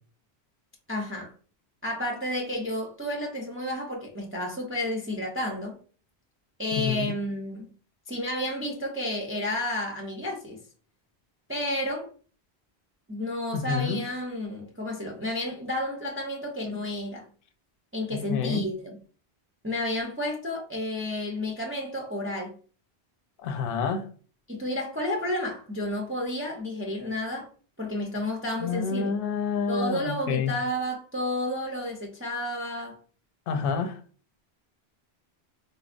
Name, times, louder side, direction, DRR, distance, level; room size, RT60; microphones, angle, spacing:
voice 1, 0.9-1.3 1.8-5.8 6.6-7.7 8.1-10.6 11.5-12.1 13.1-17.3 17.9-19.0 19.6-22.6 24.5-27.5 27.8-29.1 29.7-33.0, left 1 dB, 20° right, 0.4 m, -31 dB
voice 2, 6.7-7.2 13.5-14.0 18.1-18.7 23.4-24.1 28.6-30.5 33.5-34.0, left 5 dB, 65° left, 0.7 m, -28 dB
4.0 x 2.0 x 2.5 m
omnidirectional pair, 1.1 m